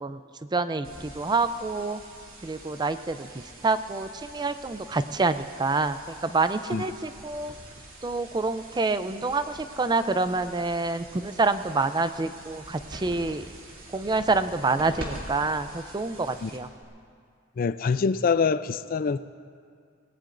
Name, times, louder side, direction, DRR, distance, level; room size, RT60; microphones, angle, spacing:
voice 1, 0.5-2.0 2.4-7.5 8.0-13.5 13.9-16.7, right 3 dB, 20° right, 11 dB, 0.4 m, -27 dB
sound 1, 0.8-16.8, right 1 dB, 65° right, 2.8 m, -45 dB
voice 2, 17.6-19.2, left 5 dB, 45° left, 14 dB, 0.4 m, -25 dB
25.0 x 18.5 x 2.6 m, 2.3 s
head